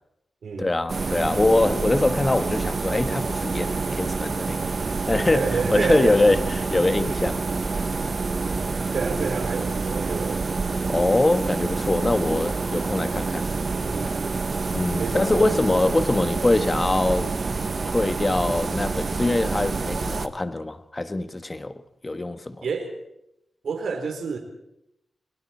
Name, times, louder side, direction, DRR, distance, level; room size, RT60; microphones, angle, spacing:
voice 1, 0.6-4.7 5.1-7.4 10.9-13.5 14.7-17.3 17.8-21.7 22.0-22.6, left 2 dB, 25° left, 1.4 m, -23 dB
sound 1, 0.9-20.3, right 4 dB, 45° right, 1.4 m, -27 dB
voice 2, 5.3-6.2 8.9-10.4 13.8-14.4 15.0-15.7 22.6-23.0 23.6-24.4, right 5 dB, 75° right, 4.0 m, -29 dB
29.5 x 21.0 x 4.4 m
wide cardioid pair, 100°, 0 cm